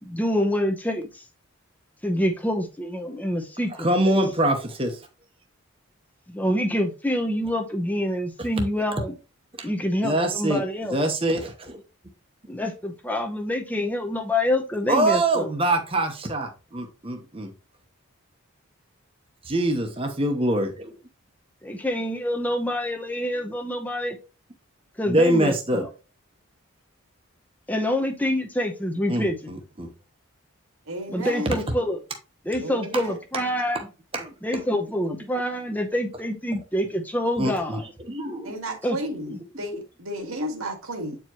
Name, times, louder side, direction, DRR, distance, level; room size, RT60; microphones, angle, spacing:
voice 1, 0.0-1.2 2.0-3.9 6.3-9.1 9.6-11.0 12.5-15.5 21.6-24.2 25.0-25.9 27.7-29.5 31.1-32.0 32.5-33.9 34.4-37.8 38.8-39.0 39.3-39.4, left 1 dB, 5° left, 0.8 m, -26 dB
voice 2, 3.8-5.0 9.6-9.7 10.0-10.6 10.9-11.8 14.9-17.5 19.4-20.9 25.1-25.9 29.1-29.9 33.3-33.4 34.1-34.3 37.4-37.8 38.1-38.5, right 1 dB, 25° right, 1.0 m, -24 dB
voice 3, 30.9-31.5 32.6-33.2 38.4-41.2, right 1 dB, 75° right, 1.9 m, -33 dB
8.3 x 4.6 x 3.0 m
head